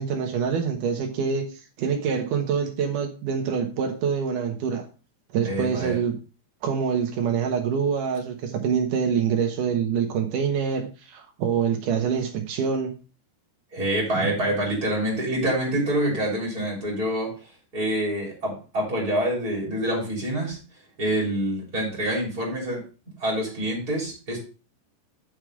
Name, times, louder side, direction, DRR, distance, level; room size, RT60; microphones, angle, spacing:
voice 1, 0.0-1.4 1.8-4.9 5.3-6.2 6.6-12.9 14.2-14.3, right 6 dB, 65° right, 4 dB, 2.3 m, -25 dB
voice 2, 5.4-6.0 13.7-17.3 17.7-20.6 21.0-22.8 23.2-24.4, right 1 dB, 20° right, -2 dB, 3.3 m, -26 dB
7.7 x 6.4 x 4.7 m, 0.34 s
omnidirectional pair, 5.0 m